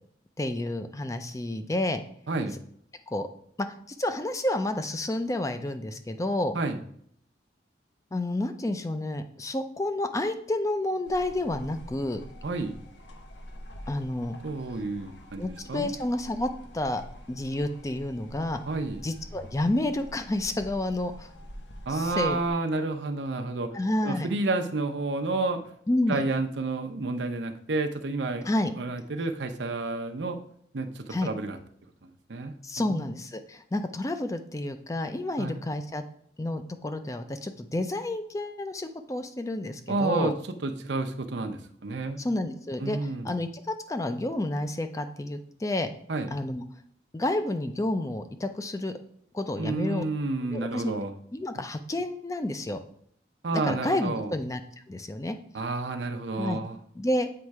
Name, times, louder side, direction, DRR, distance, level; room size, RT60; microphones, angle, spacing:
voice 1, 0.4-2.0 3.1-3.3 3.6-6.5 8.1-12.2 13.9-14.4 15.4-17.0 17.3-18.6 19.0-21.3 21.9-22.4 23.7-24.3 25.9-26.2 28.4-28.7 31.1-31.3 32.6-36.0 36.4-40.3 42.2-43.0 43.2-45.9 46.3-46.6 47.1-48.9 49.3-50.0 50.5-50.9 51.3-52.8 53.5-54.6 54.9-55.4 56.4-56.6 57.0-57.3, left 1 dB, 20° left, 8 dB, 0.4 m, -30 dB
sound 1, 11.0-22.5, equal, 85° left, 0.9 m, -46 dB
voice 2, 12.4-12.8 14.4-15.4 15.7-15.9 18.7-19.0 21.9-23.7 24.0-25.6 26.1-28.5 28.8-30.4 30.7-31.6 32.3-33.1 35.4-35.6 39.9-40.4 40.6-42.2 42.8-43.3 46.1-46.3 49.6-51.1 53.4-54.3 55.5-56.8, right 3 dB, 85° right, 6 dB, 0.7 m, -30 dB
7.7 x 3.2 x 4.7 m, 0.65 s
head